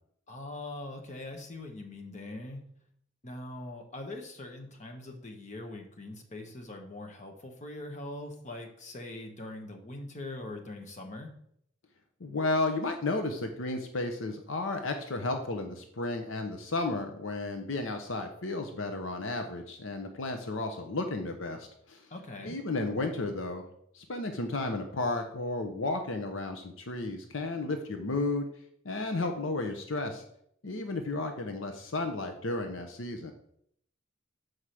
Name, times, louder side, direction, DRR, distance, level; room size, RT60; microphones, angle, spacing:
voice 1, 0.3-2.6 3.2-11.3 22.1-22.6, left 2 dB, 35° left, 3 dB, 1.1 m, -42 dB
voice 2, 12.2-22.0 22.4-23.7 23.9-28.5 28.8-30.2 30.6-33.3, left 2 dB, 70° left, 6 dB, 0.8 m, -33 dB
6.5 x 4.8 x 5.8 m, 0.69 s
head